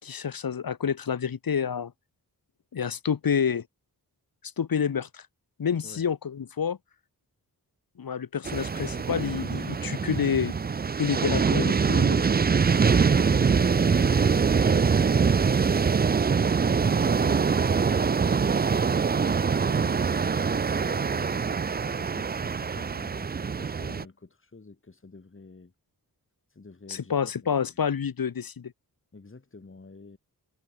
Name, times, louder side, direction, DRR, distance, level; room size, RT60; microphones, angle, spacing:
voice 1, 0.0-1.9 2.7-3.6 4.6-5.2 5.6-6.8 8.0-10.6 11.0-12.2 26.9-28.7, left 7 dB, 70° left, 1.6 m, -28 dB
sound 1, 8.4-24.0, right 5 dB, 25° right, 0.4 m, -24 dB
voice 2, 19.3-25.7 26.5-27.8 29.1-30.2, left 3 dB, 35° left, 6.2 m, -48 dB
wide cardioid pair, 135°, 37 cm